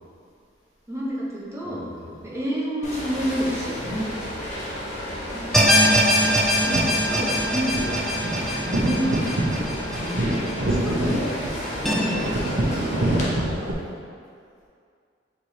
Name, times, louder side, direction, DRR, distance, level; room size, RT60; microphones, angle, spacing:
voice 1, 0.9-1.8 2.2-3.8 5.2-5.4 6.2-6.4 6.7-7.9 8.7-9.7 10.6-11.2 11.9-12.0 12.6-12.9, equal, 15° right, -6 dB, 0.8 m, -29 dB
voice 2, 1.6-2.3 3.7-4.1 8.4-8.8 10.0-11.3 11.7-13.9, equal, 20° left, -10 dB, 1.3 m, -33 dB
sound 1, 2.8-13.3, equal, 40° left, 0.8 m, -33 dB
sound 2, 5.5-10.8 11.1-11.2 11.8-11.9, equal, ahead, 0.4 m, -22 dB
sound 3, 6.5-13.7, right 1 dB, 80° right, 0.7 m, -27 dB
4.6 x 4.2 x 2.7 m, 2.3 s
head